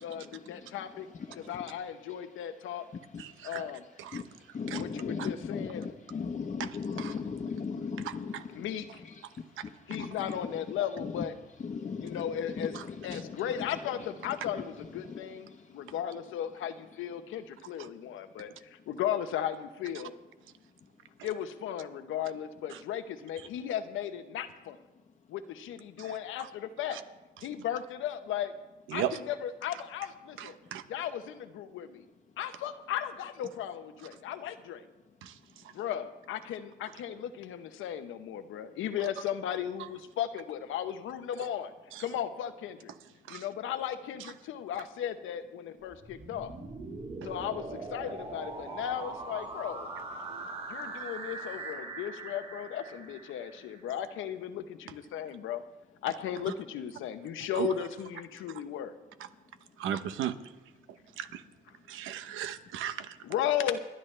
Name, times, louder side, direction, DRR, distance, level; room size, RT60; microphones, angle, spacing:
voice 1, 0.0-1.1 1.3-2.8 3.4-3.8 4.7-5.8 8.5-9.0 9.9-11.4 12.0-20.1 21.2-24.8 25.3-27.0 27.4-28.5 28.9-30.6 30.9-32.1 32.4-34.8 35.7-41.7 42.0-42.9 43.3-46.5 47.2-49.9 50.7-55.6 56.0-58.9 63.2-63.8, left 10 dB, 85° left, 1.0 m, -36 dB
voice 2, 3.2-3.6 4.0-4.2 4.7-4.8 5.2-5.3 6.6-7.2 8.0-8.4 9.6-9.7 12.7-12.8 13.1-13.2 17.8-17.9 22.7-22.8 26.0-26.1 26.9-27.0 28.9-29.2 30.4-30.8 35.2-35.4 41.9-42.0 43.3-43.4 47.2-47.3 50.3-50.4 57.5-57.7 59.8-60.4 61.2-61.4 61.9-63.2, right 10 dB, 90° right, 0.9 m, -36 dB
voice 3, 4.5-8.4 9.9-10.3 11.6-12.2 12.6-12.7 13.1-13.2 15.1-15.2, left 5 dB, 35° left, 1.1 m, -36 dB
sound 1, 45.9-53.8, right 3 dB, 30° right, 4.7 m, -41 dB
29.5 x 10.5 x 3.3 m
cardioid pair, 90°, 20 cm